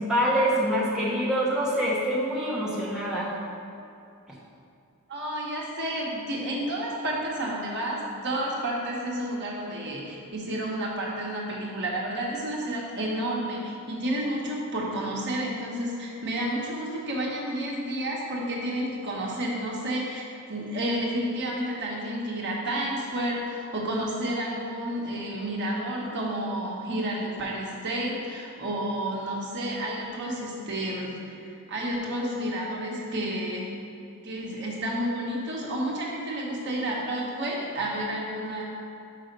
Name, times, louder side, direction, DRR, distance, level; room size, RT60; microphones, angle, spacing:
voice 1, 0.0-3.3, equal, 5° right, -7 dB, 0.9 m, -25 dB
voice 2, 5.1-33.7 34.2-38.6, right 1 dB, 50° right, -3 dB, 1.2 m, -31 dB
5.6 x 5.1 x 5.3 m, 2.6 s
head